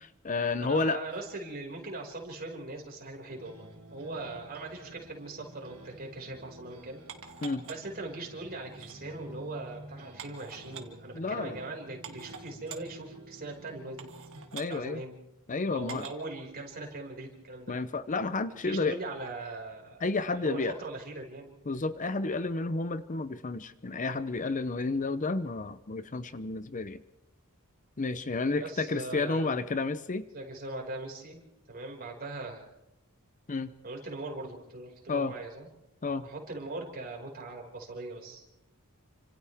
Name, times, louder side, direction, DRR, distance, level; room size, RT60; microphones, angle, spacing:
voice 1, 0.0-1.0 7.4-7.6 11.1-11.6 14.5-15.0 15.5-16.1 17.7-19.0 20.0-20.8 21.7-27.0 28.0-30.2 33.5-33.7 35.1-35.3 36.0-36.3, left 3 dB, 35° left, 13 dB, 0.7 m, -31 dB
voice 2, 0.6-7.0 7.7-14.1 14.7-15.2 15.7-17.7 18.5-20.1 20.3-21.5 28.5-29.6 30.3-31.4 31.7-32.7 33.8-35.7 36.2-38.5, right 2 dB, 45° right, 0 dB, 5.7 m, -40 dB
sound 1, 3.3-14.5, right 1 dB, 85° right, 4.1 m, -50 dB
sound 2, 7.1-8.0 8.7-9.0 10.2-10.8 11.6-11.7 12.0-12.8 13.5-13.6 14.0-14.7 15.9-16.2 16.8-16.9, right 7 dB, 65° right, 2.2 m, -45 dB
29.5 x 26.0 x 3.6 m, 0.89 s
head